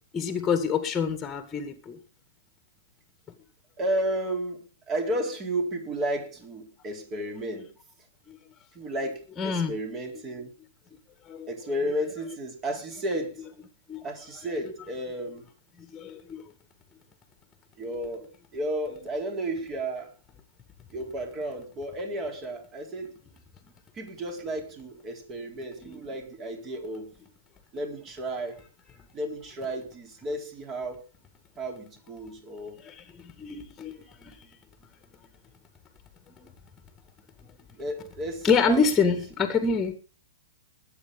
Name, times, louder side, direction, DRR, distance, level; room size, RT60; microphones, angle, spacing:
voice 1, 0.1-2.0 8.3-8.4 9.4-9.7 11.3-11.5 13.9-14.0 15.9-16.4 25.8-26.0 32.8-33.9 34.2-34.4 36.4-36.5 38.4-39.9, left 5 dB, 15° left, 2.0 m, -26 dB
voice 2, 3.8-7.7 8.7-10.5 11.5-13.4 14.0-15.5 17.8-20.1 20.9-23.1 23.9-27.1 27.7-28.6 29.1-31.0 31.6-32.8 37.8-39.1, right 1 dB, 25° right, 4.1 m, -33 dB
21.0 x 8.6 x 3.9 m
hypercardioid pair, 130°, 0 cm